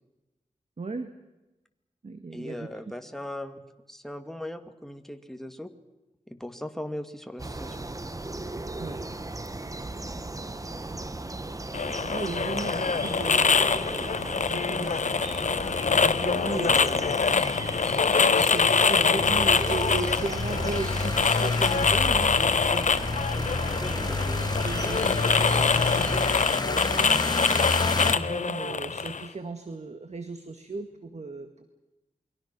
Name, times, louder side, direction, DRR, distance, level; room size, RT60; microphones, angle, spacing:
voice 1, 0.8-1.1 2.0-2.7 8.8-9.0 12.1-15.4 15.9-17.9 18.2-27.2 28.0-31.7, right 3 dB, 55° right, 7 dB, 1.9 m, -37 dB
voice 2, 2.3-5.7 6.3-7.9 16.6-16.8 23.8-24.4, left 1 dB, 5° left, 6 dB, 2.3 m, -39 dB
sound 1, 7.4-26.3, right 2 dB, 25° right, 1.2 m, -37 dB
sound 2, 11.7-29.3, left 5 dB, 65° left, 1.1 m, -25 dB
sound 3, 19.2-28.1, left 3 dB, 30° left, 1.7 m, -29 dB
29.0 x 23.0 x 6.2 m, 1.0 s
wide cardioid pair, 75°, 13 cm